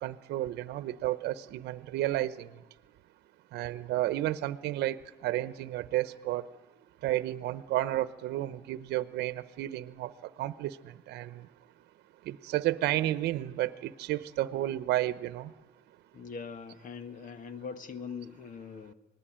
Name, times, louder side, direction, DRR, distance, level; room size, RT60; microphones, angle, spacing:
voice 1, 0.0-2.5 3.5-6.4 7.0-10.1 10.4-10.8 11.1-11.3 12.3-15.5, right 14 dB, 75° right, 13 dB, 0.9 m, -31 dB
voice 2, 16.1-18.9, left 6 dB, 50° left, 9 dB, 1.8 m, -42 dB
26.5 x 20.0 x 8.9 m, 1.1 s
cardioid pair, 110°, 17 cm